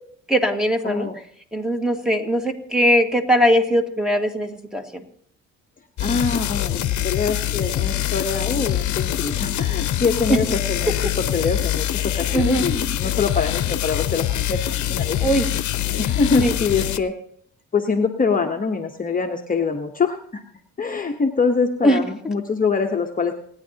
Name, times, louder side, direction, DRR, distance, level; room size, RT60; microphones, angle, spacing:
voice 1, 0.3-1.1 1.5-5.0 10.3-10.4 12.3-12.7 15.2-15.5 16.4-16.5 21.8-22.0, equal, ahead, 3 dB, 1.8 m, -20 dB
voice 2, 0.8-1.2 6.0-10.9 11.3-15.2 16.0-17.1 17.7-20.4 20.8-23.3, left 5 dB, 30° left, 3 dB, 1.1 m, -24 dB
sound 1, 6.0-17.0, left 12 dB, 70° left, 0.9 m, -24 dB
28.0 x 9.8 x 2.9 m, 0.63 s
cardioid pair, 90°, 30 cm